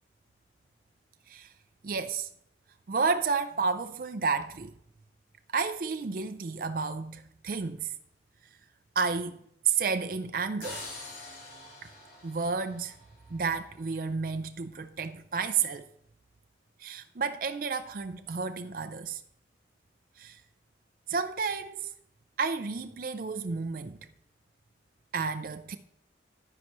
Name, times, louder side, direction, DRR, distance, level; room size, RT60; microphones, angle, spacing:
voice 1, 1.8-2.3 2.9-4.7 5.5-7.9 9.0-9.4 9.6-10.8 12.2-12.9 13.3-15.8 16.8-19.2 20.2-20.4 21.1-21.9 22.4-24.0 25.1-25.8, right 5 dB, 50° right, 0.5 m, -31 dB
sound 1, 10.6-13.5, left 2 dB, 55° left, 3.8 m, -45 dB
10.5 x 9.7 x 3.0 m
head